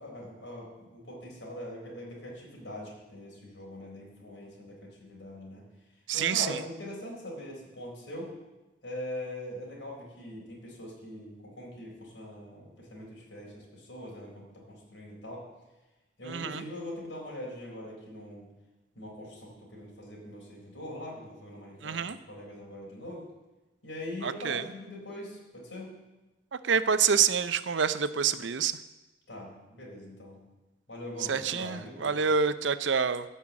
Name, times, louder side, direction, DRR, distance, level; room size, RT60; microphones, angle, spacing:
voice 1, 0.0-5.6 6.1-8.3 8.8-15.4 16.2-18.5 19.0-23.2 23.8-25.9 29.3-30.4 30.9-32.2, left 1 dB, 70° left, -3 dB, 4.2 m, -42 dB
voice 2, 6.1-6.6 16.3-16.6 21.8-22.2 24.2-24.6 26.5-28.7 31.3-33.2, right 6 dB, 75° right, 13 dB, 0.6 m, -27 dB
13.5 x 5.7 x 8.3 m, 1.1 s
head